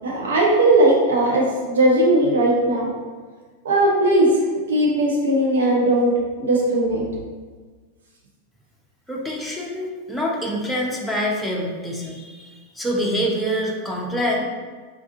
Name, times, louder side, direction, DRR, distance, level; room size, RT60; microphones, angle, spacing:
voice 1, 0.0-2.9 3.6-4.3 4.7-6.1 6.4-7.0, right 1 dB, 65° right, -2 dB, 1.0 m, -18 dB
voice 2, 9.1-14.4, equal, ahead, -4 dB, 0.7 m, -26 dB
4.9 x 3.5 x 2.6 m, 1.4 s
figure-of-eight pair, 90°, 0 cm